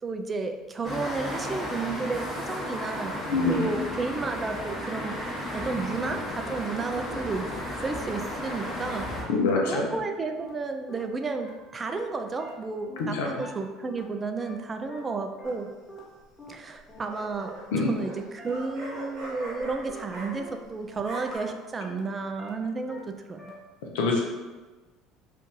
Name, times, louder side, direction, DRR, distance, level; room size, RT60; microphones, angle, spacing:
voice 1, 0.0-5.1 5.5-7.5 7.8-9.1 9.7-15.7 16.5-23.0 23.3-23.5, right 4 dB, 30° right, 6 dB, 0.3 m, -32 dB
sound 1, 0.8-9.2, left 1 dB, 20° left, 1.0 m, -34 dB
voice 2, 3.3-3.8 9.3-9.9 13.1-13.3 17.7-17.9 23.9-24.2, left 3 dB, 75° left, 0 dB, 0.6 m, -24 dB
sound 2, 5.9-6.0 6.4-6.5 6.9-7.0 7.4-7.5 7.9-8.0 8.4-8.5 8.9-9.0 9.4-9.5 9.9-10.0 10.4-10.5 10.9-11.0 11.4-11.5 11.9-12.0 12.4-12.5 12.9-13.0 13.4-13.5 13.9-14.0 14.4-14.5 14.9-15.0 15.4-15.5 15.9-16.0 16.4-16.5 16.9-17.0 17.4-17.5 17.9-18.0 18.4-18.5 18.9-19.0 19.4-19.5 19.9-20.0 20.4-20.5 20.9-21.0 21.4-21.5 21.9-22.0 22.4-22.5 22.9-23.0 23.4-23.5, equal, 5° left, 1.3 m, -46 dB
sound 3, 15.4-15.9 16.8-20.7 20.9-21.4, right 2 dB, 60° right, 1.0 m, -41 dB
2.6 x 2.5 x 3.7 m, 1.3 s
hypercardioid pair, 70°, 0 cm